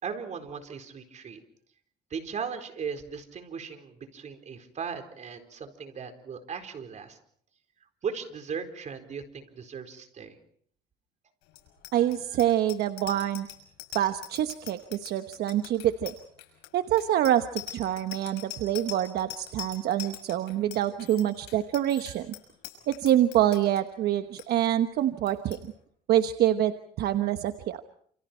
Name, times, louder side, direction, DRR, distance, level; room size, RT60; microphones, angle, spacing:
voice 1, 0.0-1.4 2.1-7.2 8.0-10.4, right 6 dB, 45° right, 7 dB, 4.4 m, -37 dB
Bicycle bell, 11.5-23.8 24.2-24.4 24.7-25.0 25.3-25.6, left 13 dB, 90° left, 6.2 m, -42 dB
voice 2, 11.9-13.5 13.9-16.1 16.7-22.3 22.9-25.6 26.1-27.8, right 12 dB, 70° right, 9 dB, 1.1 m, -26 dB
30.0 x 28.0 x 4.5 m, 0.62 s
cardioid pair, 110°, 17 cm